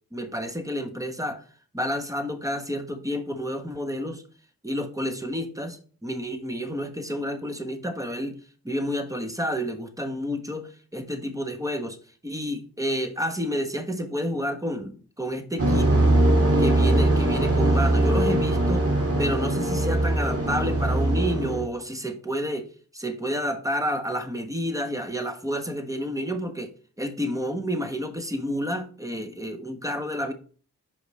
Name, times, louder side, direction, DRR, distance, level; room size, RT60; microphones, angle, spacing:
voice 1, 0.1-1.4 1.7-4.2 4.6-8.4 8.6-12.0 12.2-15.9 16.6-26.7 27.0-30.3, equal, 10° right, 8 dB, 1.2 m, -30 dB
sound 1, 15.6-21.7, right 1 dB, 35° right, 2.1 m, -21 dB
5.1 x 5.1 x 4.2 m, 0.41 s
supercardioid pair, 45°, 39 cm